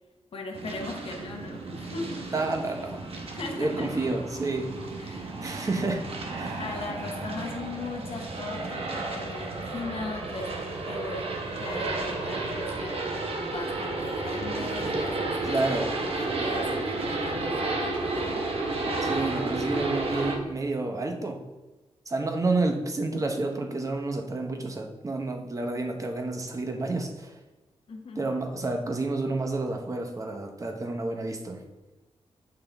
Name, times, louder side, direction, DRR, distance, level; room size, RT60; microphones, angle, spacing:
voice 1, 0.3-2.3 3.3-4.1 5.0-5.4 5.9-6.2 6.6-11.3 11.6-15.6 16.0-18.4 27.9-28.3, left 3 dB, 60° left, -1 dB, 1.0 m, -38 dB
sound 1, 0.5-20.4, right 2 dB, 60° right, 0.9 m, -32 dB
voice 2, 2.3-3.0 3.6-4.7 5.4-6.1 6.3-6.6 15.5-15.9 19.0-21.4 22.1-27.4 28.2-31.6, right 2 dB, 30° right, 4 dB, 0.7 m, -29 dB
8.8 x 3.8 x 3.3 m, 1.1 s
wide cardioid pair, 120°, 11 cm